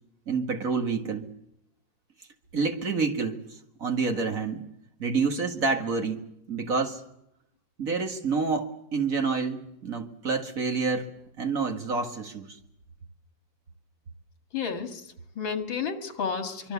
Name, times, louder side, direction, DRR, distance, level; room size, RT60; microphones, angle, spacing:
voice 1, 0.3-1.3 2.5-4.6 5.0-6.2 6.5-7.0 7.8-11.1 11.4-12.6, right 4 dB, 45° right, 5 dB, 2.1 m, -28 dB
voice 2, 14.5-16.7, left 6 dB, 85° left, 7 dB, 2.8 m, -32 dB
24.5 x 24.0 x 7.1 m, 0.82 s
omnidirectional pair, 2.1 m